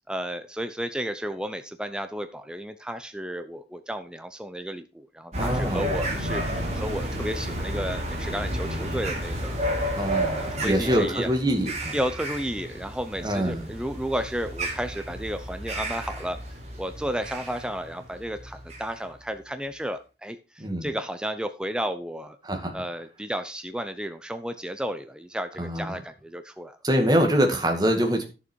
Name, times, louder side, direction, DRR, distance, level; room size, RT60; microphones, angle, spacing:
voice 1, 0.1-9.6 10.1-11.3 11.9-16.4 16.8-22.4 22.7-26.8, equal, 5° right, 9 dB, 0.6 m, -33 dB
voice 2, 5.3-5.8 10.0-11.9 13.2-13.6 20.6-20.9 22.4-22.7 25.6-26.0 26.8-28.2, equal, 20° right, 3 dB, 2.1 m, -24 dB
sound 1, 5.3-19.1, right 1 dB, 40° right, 2.7 m, -32 dB
11.0 x 7.0 x 4.6 m, 0.32 s
head